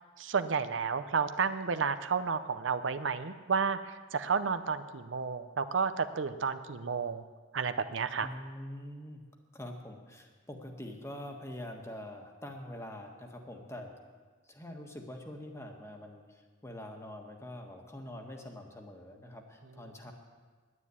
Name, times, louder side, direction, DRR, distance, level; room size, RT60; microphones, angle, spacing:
voice 1, 0.2-7.2 7.5-8.3, right 5 dB, 80° right, 11 dB, 0.6 m, -31 dB
voice 2, 8.2-9.2 9.5-13.9 14.4-20.1, left 1 dB, 15° left, 3 dB, 1.4 m, -45 dB
9.7 x 9.5 x 9.7 m, 1.5 s
head